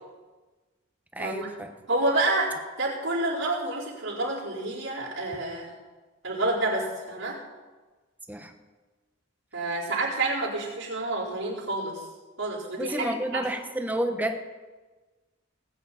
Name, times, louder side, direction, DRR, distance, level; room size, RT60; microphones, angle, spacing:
voice 1, 1.1-1.7 8.3-8.5 12.8-14.4, right 1 dB, 10° right, 6 dB, 1.0 m, -30 dB
voice 2, 1.9-2.5 2.8-5.7 6.2-7.4 9.5-12.0 12.4-13.4, right 2 dB, 85° right, -6 dB, 4.3 m, -28 dB
19.0 x 9.3 x 4.2 m, 1.3 s
head